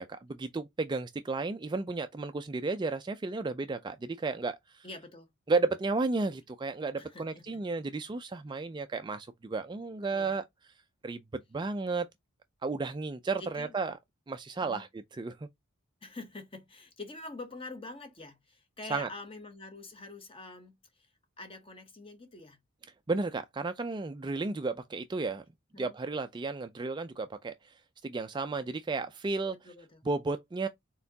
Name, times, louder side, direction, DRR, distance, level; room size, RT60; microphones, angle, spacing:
voice 1, 0.0-4.9 5.5-10.4 11.0-12.1 12.6-13.9 14.3-14.9 15.2-15.5 18.9-19.1 23.1-25.4 25.8-27.7 28.0-29.6 30.1-30.7, right 3 dB, 20° right, 0.3 m, -33 dB
voice 2, 4.8-5.3 7.0-7.6 10.1-10.4 13.4-13.7 14.6-14.8 16.0-21.1 21.4-22.6 25.7-26.0 29.5-30.0, left 2 dB, 25° left, 0.9 m, -46 dB
4.2 x 3.8 x 2.7 m
head